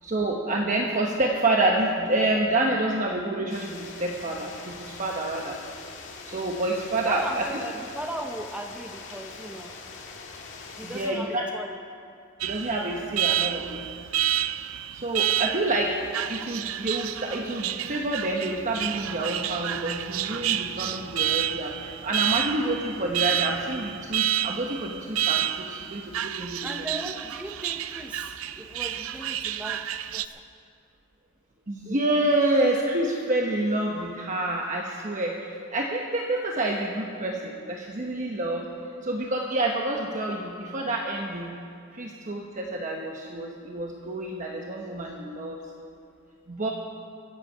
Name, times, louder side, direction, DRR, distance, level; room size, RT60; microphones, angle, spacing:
voice 1, 0.0-5.6 6.3-7.5 10.8-11.4 12.4-14.0 14.9-26.7 31.7-38.7 39.0-41.5 41.9-45.6 46.5-46.7, right 2 dB, 40° right, 0 dB, 1.0 m, -28 dB
sound 1, 3.5-11.1, left 4 dB, 60° left, 1.9 m, -43 dB
voice 2, 7.0-9.8 10.8-11.8 14.7-14.8 26.6-30.4, right 1 dB, 5° right, 4 dB, 0.6 m, -38 dB
Alarm, 12.4-30.3, right 12 dB, 75° right, 0.5 m, -30 dB
sound 2, 18.5-24.0, equal, 85° left, 2.4 m, -48 dB
24.5 x 8.5 x 5.6 m, 2.4 s
head